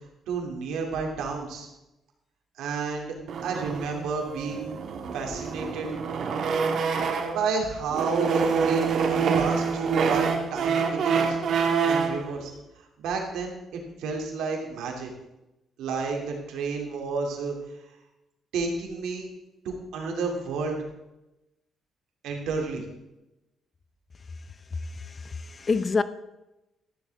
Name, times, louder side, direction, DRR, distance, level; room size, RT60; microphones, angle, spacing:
voice 1, 0.3-1.7 2.6-3.1 3.4-4.8 5.1-5.9 7.3-11.4 11.8-15.1 15.8-17.6 18.5-19.3 19.6-20.8 22.2-22.8, right 4 dB, 90° right, 2.6 m, -31 dB
sound 1, 3.3-7.5 7.9-12.2, right 6 dB, 65° right, 1.5 m, -26 dB
voice 2, 25.0-26.0, left 4 dB, 35° left, 0.7 m, -27 dB
13.5 x 11.5 x 3.5 m
cardioid pair, 90°, 0 cm